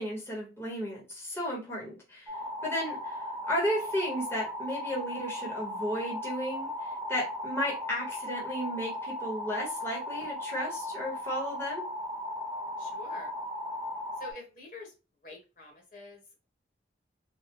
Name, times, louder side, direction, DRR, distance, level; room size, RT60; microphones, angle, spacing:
voice 1, 0.0-2.4 2.6-3.2 3.5-11.9, equal, 15° left, -4 dB, 1.0 m, -34 dB
sound 1, 2.3-14.3, left 1 dB, 15° right, 0.5 m, -37 dB
voice 2, 12.8-13.3 14.2-14.9 15.2-16.5, left 2 dB, 50° left, 1 dB, 1.2 m, -47 dB
3.3 x 2.2 x 2.9 m, 0.29 s
head